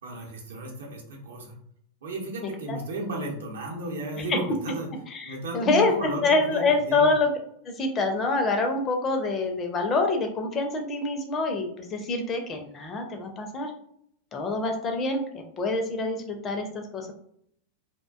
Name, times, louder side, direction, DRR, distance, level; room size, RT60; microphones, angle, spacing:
voice 1, 0.0-1.5 2.0-4.9 5.2-7.1, right 2 dB, 65° right, -1 dB, 0.7 m, -34 dB
voice 2, 5.1-7.3 7.7-13.7 14.3-17.1, left 3 dB, 25° left, 4 dB, 0.5 m, -26 dB
2.4 x 2.1 x 2.3 m, 0.67 s
figure-of-eight pair, 90°, 0 cm